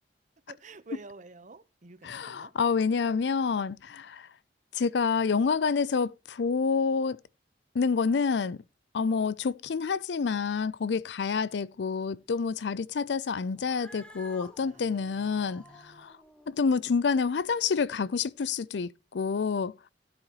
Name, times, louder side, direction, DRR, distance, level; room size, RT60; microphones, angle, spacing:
voice 1, 0.5-2.5 14.6-16.1, right 3 dB, 45° right, 0.9 m, -50 dB
voice 2, 2.0-4.3 4.7-7.2 7.7-8.6 8.9-16.1 16.5-19.7, left 5 dB, 70° left, 0.4 m, -28 dB
Cat, 13.5-18.2, equal, 5° left, 1.2 m, -53 dB
15.5 x 8.9 x 3.0 m
head